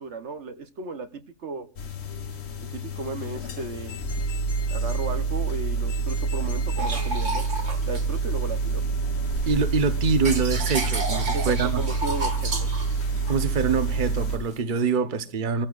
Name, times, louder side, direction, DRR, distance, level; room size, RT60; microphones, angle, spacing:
voice 1, 0.0-1.7 2.7-4.1 4.7-7.5 7.9-8.8 11.3-12.7, right 4 dB, 70° right, 1.3 m, -35 dB
sound 1, 1.8-14.4, right 3 dB, 65° left, 1.3 m, -27 dB
sound 2, 6.8-8.8 9.3-14.6, right 2 dB, 90° right, 2.2 m, -33 dB
voice 2, 9.5-11.8 13.3-15.7, right 5 dB, 45° right, 1.1 m, -25 dB
27.5 x 14.5 x 2.5 m
omnidirectional pair, 1.2 m